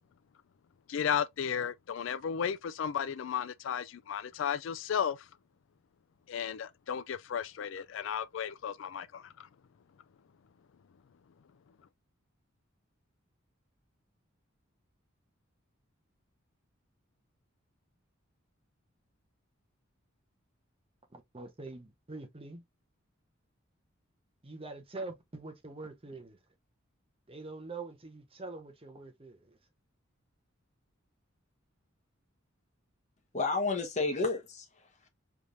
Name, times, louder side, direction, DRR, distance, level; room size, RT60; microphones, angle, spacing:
voice 1, 0.9-5.3 6.3-9.5, left 8 dB, 65° left, 0.3 m, -34 dB
voice 2, 21.1-22.6 24.4-26.4 27.3-29.6, right 3 dB, 30° right, 0.9 m, -44 dB
voice 3, 33.3-35.1, left 3 dB, 35° left, 1.3 m, -31 dB
4.7 x 3.4 x 2.5 m
head